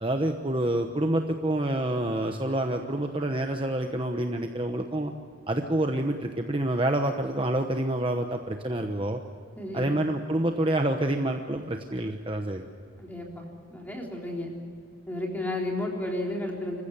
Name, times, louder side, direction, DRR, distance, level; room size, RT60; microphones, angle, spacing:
voice 1, 0.0-5.1 5.5-9.2 9.7-12.7, right 1 dB, 25° right, 4 dB, 1.0 m, -27 dB
voice 2, 9.6-9.9 13.0-13.5 13.7-14.5 15.1-16.8, left 1 dB, 10° left, -1 dB, 3.8 m, -32 dB
26.0 x 15.5 x 8.9 m, 2.3 s
head